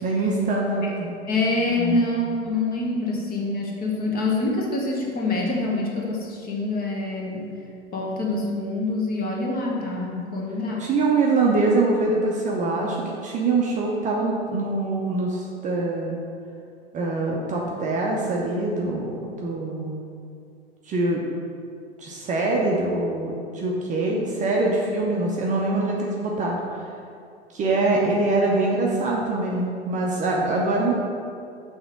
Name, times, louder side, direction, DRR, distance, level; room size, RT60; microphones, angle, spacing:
voice 1, 0.0-1.1 1.8-2.0 10.1-10.3 10.8-16.2 16.9-20.0 20.9-21.2 22.0-26.6 27.5-30.9, right 2 dB, 25° right, -2 dB, 0.7 m, -24 dB
voice 2, 1.3-7.5 7.9-10.8, left 2 dB, 30° left, -2 dB, 1.3 m, -26 dB
5.9 x 3.5 x 5.2 m, 2.4 s
figure-of-eight pair, 90°, 33 cm